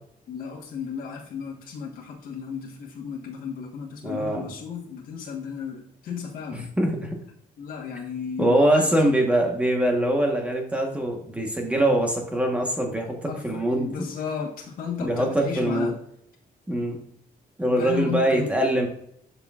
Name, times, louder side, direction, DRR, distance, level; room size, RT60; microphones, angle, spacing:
voice 1, 0.3-6.7 7.6-9.0 13.3-16.0 17.7-18.6, left 6 dB, 70° left, -2 dB, 1.3 m, -34 dB
voice 2, 4.0-4.5 6.5-7.1 8.4-14.1 15.0-15.9 16.7-17.0 17.6-18.9, right 1 dB, 10° right, 1 dB, 1.2 m, -23 dB
11.5 x 5.7 x 2.4 m, 0.71 s
cardioid pair, 170°, 15 cm